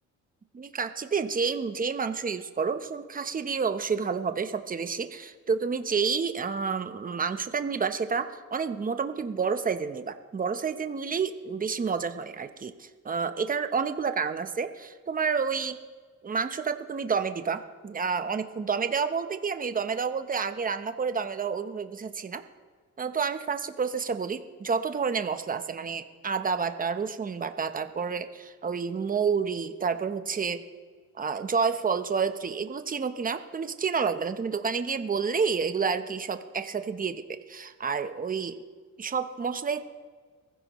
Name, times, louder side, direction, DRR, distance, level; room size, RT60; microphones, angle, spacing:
voice 1, 0.5-15.8 16.2-22.4 23.0-30.6 31.2-38.6 39.0-39.8, right 5 dB, 30° right, 8 dB, 1.0 m, -29 dB
23.0 x 15.0 x 3.1 m, 1.5 s
cardioid pair, 90°, 30 cm